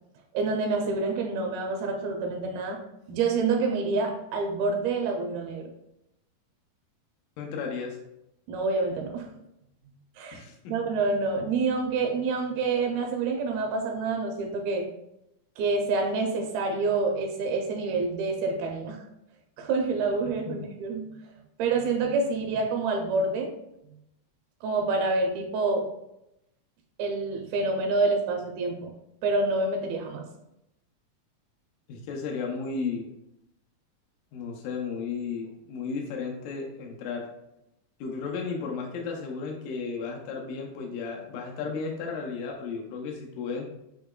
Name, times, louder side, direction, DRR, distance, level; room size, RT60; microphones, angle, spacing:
voice 1, 0.3-2.8 3.1-5.7 8.5-9.3 10.2-10.4 10.7-14.9 15.6-19.0 19.6-21.1 21.6-23.5 24.6-25.9 27.0-28.9 29.2-30.3, right 3 dB, 80° right, 2 dB, 2.4 m, -27 dB
voice 2, 7.4-8.0 10.3-10.7 20.5-20.6 31.9-33.0 34.3-37.3 38.0-43.7, left 5 dB, 90° left, 1 dB, 1.8 m, -34 dB
8.0 x 2.9 x 2.2 m, 0.85 s
omnidirectional pair, 4.4 m